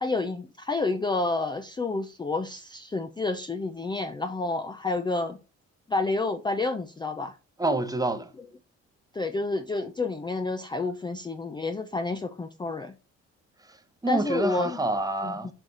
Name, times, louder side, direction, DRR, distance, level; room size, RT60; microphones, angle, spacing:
voice 1, 0.0-5.4 5.9-7.4 9.1-12.9 14.1-14.8 15.2-15.5, left 3 dB, 15° left, 0.5 m, -29 dB
voice 2, 7.6-8.3 13.6-15.5, right 2 dB, 10° right, 0.8 m, -28 dB
6.2 x 4.1 x 3.8 m
cardioid pair, 90°, 30 cm